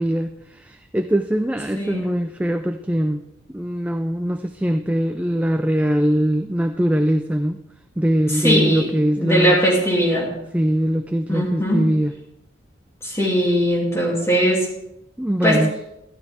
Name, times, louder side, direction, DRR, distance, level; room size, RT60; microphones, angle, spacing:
voice 1, 0.0-3.2 3.5-7.6 8.0-9.6 10.5-12.1 15.2-15.7, equal, 10° right, 7 dB, 0.3 m, -21 dB
voice 2, 1.7-2.1 8.3-8.9 9.2-10.3 11.3-11.8 13.0-14.7 15.4-15.6, equal, 15° left, -4 dB, 2.9 m, -19 dB
12.0 x 11.5 x 3.6 m, 0.84 s
head